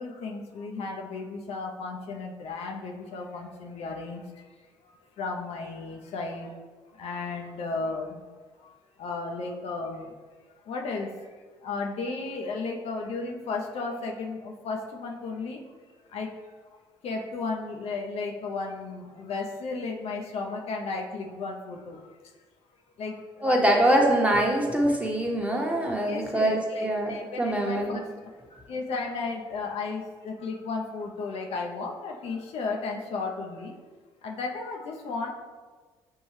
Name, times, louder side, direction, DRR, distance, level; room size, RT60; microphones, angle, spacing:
voice 1, 0.0-4.2 5.2-6.5 7.0-8.2 9.0-10.1 10.7-11.1 11.6-15.6 16.1-16.3 17.0-22.0 23.0-23.8 26.1-28.0 28.7-33.8 34.2-35.3, left 4 dB, 50° left, 1 dB, 0.6 m, -34 dB
voice 2, 23.4-27.1 27.4-28.0, right 1 dB, 10° right, 0 dB, 1.0 m, -24 dB
6.3 x 2.6 x 3.2 m, 1.4 s
figure-of-eight pair, 50°, 13 cm